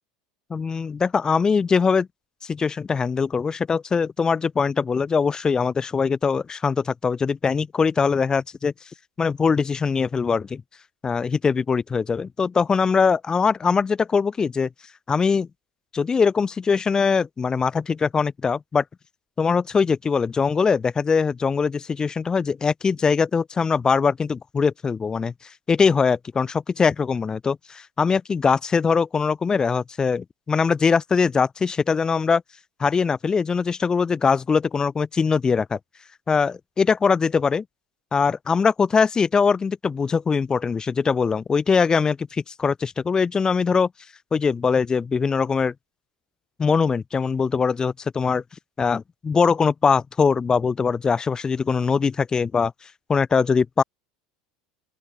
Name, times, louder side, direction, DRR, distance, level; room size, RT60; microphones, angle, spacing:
voice 1, 0.5-2.1 2.4-8.7 9.2-10.6 11.0-14.7 15.1-15.5 15.9-18.8 19.4-25.3 25.7-32.4 32.8-35.8 36.3-37.6 38.1-43.9 44.3-45.7 46.6-48.4 48.8-52.7 53.1-53.8, left 5 dB, 25° left, 6.4 m, -22 dB
open air
hypercardioid pair, 90°, 3 cm